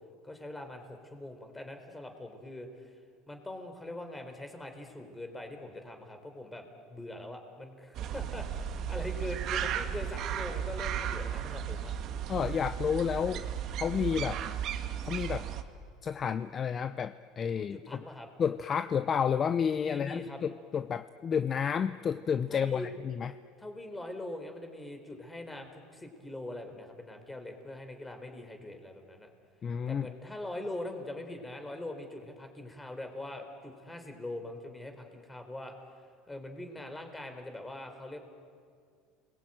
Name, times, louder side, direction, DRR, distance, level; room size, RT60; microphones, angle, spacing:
voice 1, 0.2-2.9 3.3-11.9 14.2-14.4 17.5-18.3 19.8-20.4 22.5-22.9 23.6-29.3 29.9-35.7 36.3-38.2, left 1 dB, 10° left, 5 dB, 4.1 m, -42 dB
sound 1, 7.9-15.6, right 9 dB, 50° right, 1.9 m, -35 dB
voice 2, 12.3-13.4 13.8-14.4 15.1-15.5 16.0-18.0 18.4-23.3 29.6-30.1, left 7 dB, 35° left, 12 dB, 0.7 m, -30 dB
29.5 x 21.5 x 9.2 m, 2.2 s
supercardioid pair, 120°, 0 cm